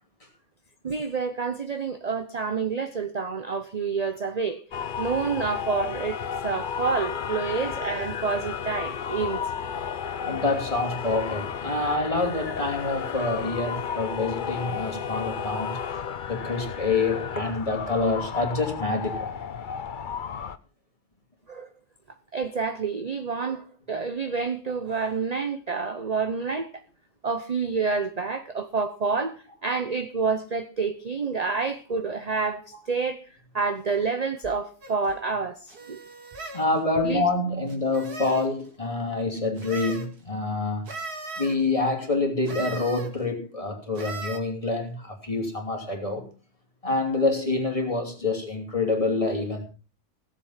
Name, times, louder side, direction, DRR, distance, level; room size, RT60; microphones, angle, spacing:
voice 1, 0.8-4.6 5.0-9.4 21.5-21.7 22.3-26.7 27.2-29.4 29.6-32.6 32.9-33.2 33.5-35.6 35.9-36.0 37.0-37.2, right 5 dB, 35° right, 0.7 m, -28 dB
sound 1, 4.7-20.6, left 7 dB, 45° left, 0.6 m, -33 dB
voice 2, 10.2-15.8 16.3-19.3 36.5-40.9 41.4-46.3 46.8-49.6, left 3 dB, 20° left, 2.9 m, -27 dB
sound 2, 34.8-35.0 35.7-36.7 37.7-38.5 39.6-40.1 40.9-41.6 42.5-43.1 44.0-44.4, right 3 dB, 80° right, 2.7 m, -37 dB
17.0 x 7.6 x 5.7 m
omnidirectional pair, 1.6 m